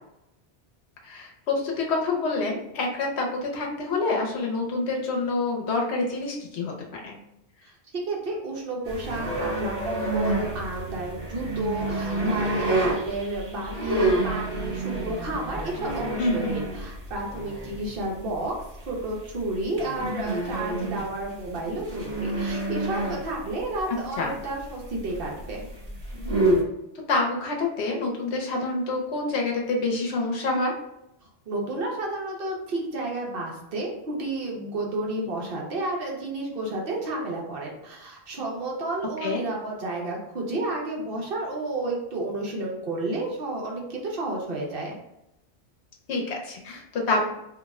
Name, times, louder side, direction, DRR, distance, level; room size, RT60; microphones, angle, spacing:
voice 1, 1.0-7.1 16.2-16.5 24.2-24.4 27.1-30.7 39.2-39.4 46.1-47.3, left 3 dB, 85° left, 0 dB, 1.0 m, -27 dB
voice 2, 8.1-18.5 18.8-25.7 31.5-45.0, right 2 dB, 60° right, -1 dB, 0.9 m, -31 dB
sound 1, 8.8-26.6, right 2 dB, 35° right, 0.8 m, -29 dB
2.6 x 2.1 x 3.5 m, 0.85 s
omnidirectional pair, 1.1 m